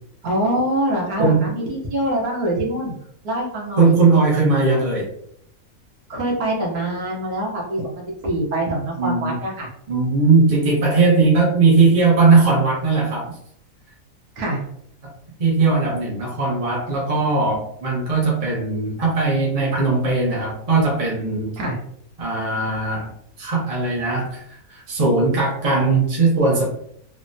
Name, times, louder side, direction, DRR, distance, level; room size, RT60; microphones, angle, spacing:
voice 1, 0.2-2.9 3.2-3.9 6.1-9.7 14.4-14.6 21.6-21.8, right 1 dB, 85° right, -2 dB, 1.4 m, -24 dB
voice 2, 1.2-1.5 3.8-5.1 9.0-9.4 9.9-13.3 15.4-21.6 22.2-23.1 23.4-26.6, right 3 dB, 40° right, -4 dB, 0.5 m, -18 dB
3.4 x 2.1 x 2.6 m, 0.70 s
omnidirectional pair, 1.5 m